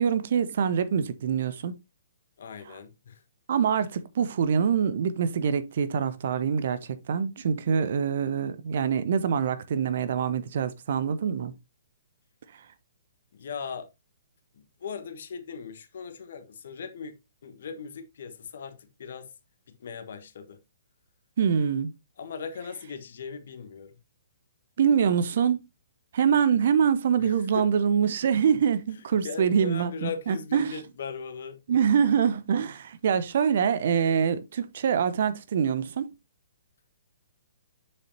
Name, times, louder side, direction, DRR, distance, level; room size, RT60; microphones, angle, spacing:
voice 1, 0.0-1.8 3.5-11.5 21.4-21.9 24.8-25.6 26.1-30.8 31.7-36.1, right 7 dB, 50° right, 0.8 m, -25 dB
voice 2, 2.4-3.2 13.3-13.9 14.5-17.2 17.4-19.3 19.8-20.6 22.2-24.0 27.2-27.7 29.2-31.6, left 6 dB, 55° left, 1.3 m, -39 dB
7.5 x 6.7 x 2.8 m
figure-of-eight pair, 125°, 0 cm